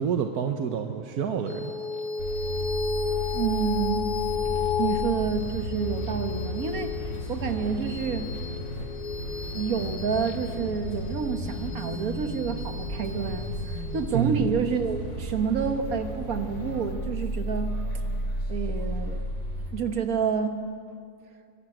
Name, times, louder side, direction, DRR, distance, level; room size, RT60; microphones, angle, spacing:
voice 1, 0.0-1.8 14.1-14.6, right 7 dB, 90° right, 5 dB, 1.5 m, -28 dB
sound 1, 1.5-16.2, left 6 dB, 85° left, 1.6 m, -34 dB
sound 2, 2.2-19.7, equal, 65° left, 4.4 m, -34 dB
voice 2, 3.3-4.1 4.8-8.3 9.5-17.8 18.5-19.2 19.7-20.6, right 6 dB, 70° right, 7 dB, 1.8 m, -29 dB
23.0 x 16.0 x 9.1 m, 2.4 s
omnidirectional pair, 1.6 m